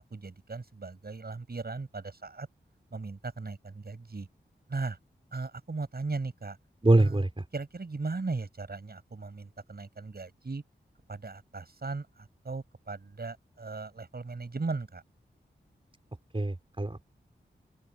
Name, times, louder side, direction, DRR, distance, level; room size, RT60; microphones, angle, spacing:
voice 1, 0.0-2.5 2.9-4.3 4.7-5.0 5.3-6.6 7.0-7.2 7.5-10.6 11.1-15.0, right 3 dB, 55° right, 7.2 m, -37 dB
voice 2, 6.8-7.4 16.3-17.0, right 2 dB, 30° right, 4.6 m, -24 dB
open air
cardioid pair, 40°, 19 cm